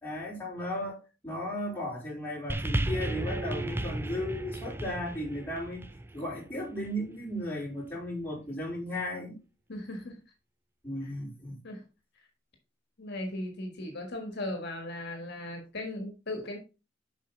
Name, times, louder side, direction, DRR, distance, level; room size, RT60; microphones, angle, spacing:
voice 1, 0.0-5.8 6.1-9.4 10.8-11.6, left 1 dB, 10° left, 4.1 m, -35 dB
sound 1, 2.5-7.0 7.9-8.0, right 1 dB, 10° right, 0.4 m, -34 dB
voice 2, 9.7-10.2 11.0-11.1 11.6-11.8 13.0-16.6, left 1 dB, 60° left, 1.6 m, -37 dB
7.3 x 5.3 x 4.1 m
head